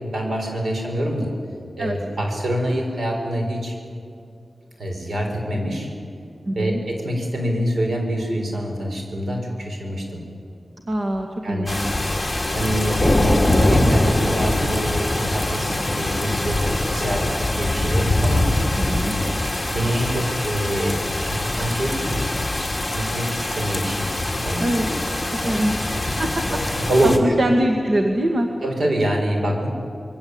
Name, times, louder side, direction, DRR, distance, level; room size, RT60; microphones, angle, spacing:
voice 1, 0.1-1.3 1.8-3.8 4.8-5.9 6.6-10.2 11.4-11.8 12.5-18.5 19.1-19.3 19.7-22.3 22.9-24.1 24.4-24.7 25.4-25.6 26.5-27.3 28.6-29.7, right 1 dB, 75° right, 2 dB, 6.2 m, -25 dB
voice 2, 6.5-6.8 10.9-11.7 18.8-19.1 24.6-24.8 25.3-25.8 26.2-26.3 26.7-26.9 27.2-28.5, right 1 dB, 55° right, 2 dB, 2.0 m, -23 dB
sound 1, 11.7-27.2, left 1 dB, 10° left, 2.7 m, -23 dB
26.5 x 22.5 x 8.8 m, 2.6 s
wide cardioid pair, 95°, 0 cm